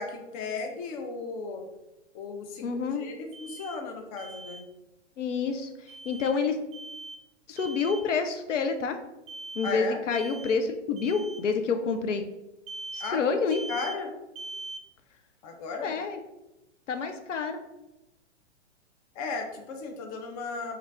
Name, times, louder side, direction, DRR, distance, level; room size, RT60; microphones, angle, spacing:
voice 1, 0.0-1.7 2.1-2.7 3.0-4.7 9.6-10.0 13.0-13.4 13.7-14.1 15.4-15.9 19.2-20.8, left 4 dB, 30° left, 4 dB, 0.5 m, -35 dB
voice 2, 2.6-3.1 5.2-5.7 6.1-6.6 7.5-9.0 9.6-12.2 12.9-13.6 15.8-16.2 16.9-17.6, left 5 dB, 90° left, 7 dB, 0.5 m, -28 dB
Alarm, 3.3-3.8 4.2-4.6 5.9-6.3 6.7-7.2 7.6-8.1 9.3-9.8 10.1-10.6 11.0-11.4 12.7-13.2 13.5-14.0 14.4-14.8, right 2 dB, 50° right, 0.5 m, -41 dB
3.3 x 2.3 x 3.3 m, 0.96 s
hypercardioid pair, 115°, 36 cm